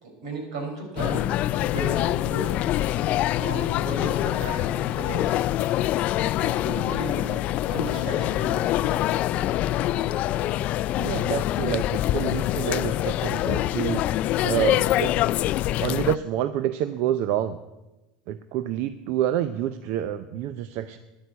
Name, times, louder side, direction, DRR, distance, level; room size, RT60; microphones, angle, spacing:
voice 1, 0.0-2.6 3.3-5.3 6.4-7.2 7.6-8.7, right 2 dB, 80° right, 3 dB, 4.7 m, -35 dB
Logan Airport, 1.0-16.2, left 14 dB, 45° left, 0.3 m, -25 dB
voice 2, 11.0-15.3 15.8-17.6 18.3-21.0, right 11 dB, 55° right, 12 dB, 0.6 m, -28 dB
10.5 x 9.6 x 8.2 m, 1.0 s
supercardioid pair, 130°, 3 cm